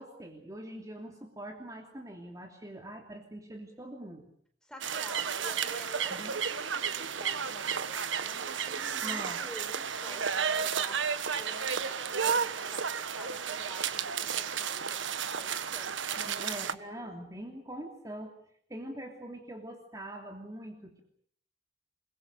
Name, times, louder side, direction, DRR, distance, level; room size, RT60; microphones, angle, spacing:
voice 1, 0.0-4.3 6.1-6.3 9.0-9.4 16.2-18.3 18.7-21.0, right 1 dB, 20° right, 3 dB, 3.0 m, -43 dB
voice 2, 4.6-16.4 17.0-17.1, equal, 5° left, 4 dB, 4.7 m, -50 dB
sound 1, 4.8-16.7, right 7 dB, 80° right, 1.4 m, -32 dB
29.5 x 22.0 x 6.7 m, 0.64 s
head